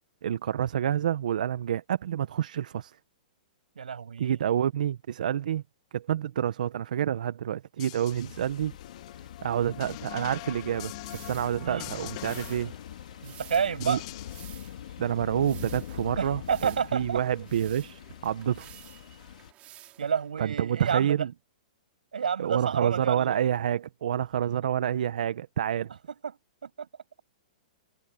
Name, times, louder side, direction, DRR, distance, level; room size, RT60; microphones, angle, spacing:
voice 1, 0.2-3.0 4.2-5.6 5.9-8.7 9.4-12.7 13.8-14.0 15.0-18.7 20.4-21.3 22.4-25.9, right 10 dB, 70° right, 1.1 m, -28 dB
voice 2, 3.8-4.4 11.6-11.9 13.2-14.0 16.2-17.2 20.0-21.2 22.1-23.4 26.2-26.3 26.6-26.9, right 7 dB, 90° right, 7.9 m, -30 dB
sound 1, 7.8-14.5, left 21 dB, 45° left, 2.1 m, -44 dB
sound 2, 8.1-19.5, left 11 dB, 70° left, 3.7 m, -44 dB
sound 3, 11.0-20.3, right 14 dB, 30° right, 5.1 m, -53 dB
hypercardioid pair, 135°, 4 cm